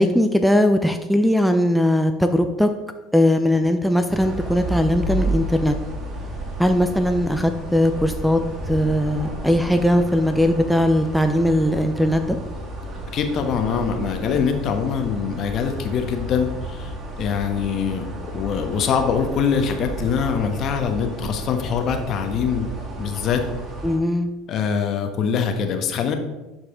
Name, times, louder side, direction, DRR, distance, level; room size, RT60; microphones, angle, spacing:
voice 1, 0.0-2.7 3.1-5.7 6.6-8.4 8.7-12.4 23.8-24.3, left 1 dB, ahead, 8 dB, 0.7 m, -19 dB
sound 1, 4.1-24.0, right 1 dB, 35° right, 2.4 m, -32 dB
voice 2, 13.1-18.1 18.3-22.7 23.0-23.4 24.5-26.1, left 6 dB, 50° left, 5 dB, 1.2 m, -23 dB
11.0 x 4.8 x 3.7 m, 1.1 s
hypercardioid pair, 75°, 0 cm